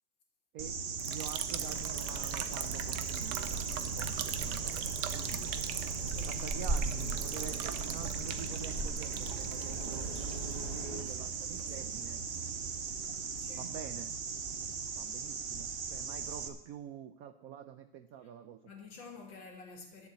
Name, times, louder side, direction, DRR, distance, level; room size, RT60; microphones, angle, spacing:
sound 1, 0.6-16.5, right 5 dB, 45° right, 0.8 m, -39 dB
Liquid, 1.0-13.4, right 9 dB, 65° right, 1.2 m, -42 dB
voice 1, 1.0-5.5 6.3-10.1 10.5-12.2 13.5-14.1 15.0-18.6, right 9 dB, 85° right, 10 dB, 0.7 m, -47 dB
sound 2, 1.5-11.0, right 2 dB, 20° right, 1.5 m, -40 dB
voice 2, 6.1-6.4 13.4-13.8 18.2-18.3 18.6-20.1, left 3 dB, 70° left, 2 dB, 2.7 m, -50 dB
11.0 x 7.1 x 8.1 m, 0.89 s
omnidirectional pair, 2.1 m